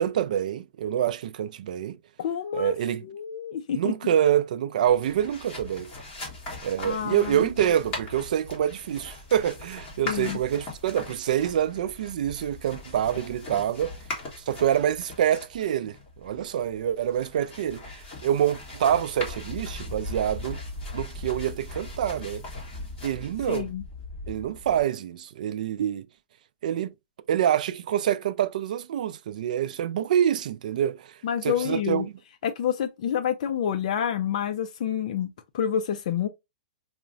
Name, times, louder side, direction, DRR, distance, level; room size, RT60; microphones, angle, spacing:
voice 1, 0.0-2.0 2.5-3.1 3.7-5.9 6.6-13.9 14.5-16.0 16.2-17.8 18.2-20.6 20.9-22.4 23.0-23.7 24.3-26.1 26.6-26.9 27.3-31.1 31.4-32.1, right 10 dB, 55° right, 0.3 m, -26 dB
voice 2, 2.2-2.7 3.0-3.9 6.8-7.5 10.1-10.4 23.5-23.8 31.2-32.1 32.4-36.3, left 9 dB, 50° left, 0.4 m, -28 dB
sound 1, 4.9-24.8, left 2 dB, 20° left, 1.5 m, -39 dB
5.5 x 2.1 x 2.5 m
hypercardioid pair, 170°, 5 cm